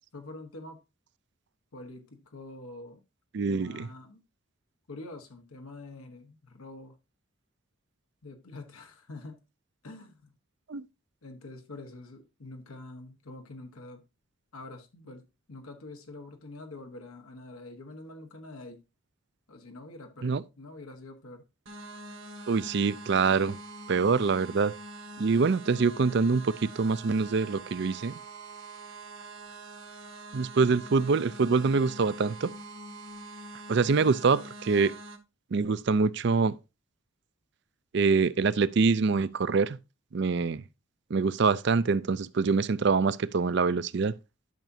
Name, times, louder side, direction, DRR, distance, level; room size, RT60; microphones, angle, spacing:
voice 1, 0.1-0.8 1.7-3.0 3.5-4.2 4.9-6.9 8.2-9.4 9.8-10.3 11.2-14.0 14.5-18.8 19.5-21.5 42.4-42.6, left 2 dB, 90° left, 1.2 m, -45 dB
voice 2, 3.3-3.9 10.7-10.8 20.2-20.4 22.5-23.6 23.9-24.7 25.2-28.1 30.3-32.5 33.7-34.9 35.5-36.5 37.9-39.8 40.1-40.6 41.1-44.1, right 4 dB, 55° right, 0.4 m, -25 dB
sound 1, 21.7-35.2, right 2 dB, 75° right, 1.9 m, -44 dB
12.0 x 5.9 x 2.7 m
head